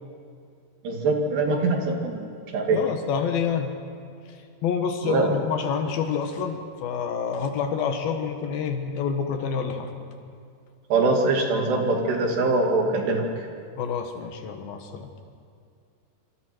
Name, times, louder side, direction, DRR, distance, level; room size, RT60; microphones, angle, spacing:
voice 1, 0.8-2.8 5.0-5.3 10.9-13.3, right 3 dB, 85° right, 1 dB, 4.5 m, -23 dB
voice 2, 2.7-3.7 4.6-9.9 13.8-15.1, left 6 dB, 70° left, 5 dB, 3.1 m, -28 dB
26.5 x 26.0 x 4.5 m, 2.4 s
omnidirectional pair, 4.7 m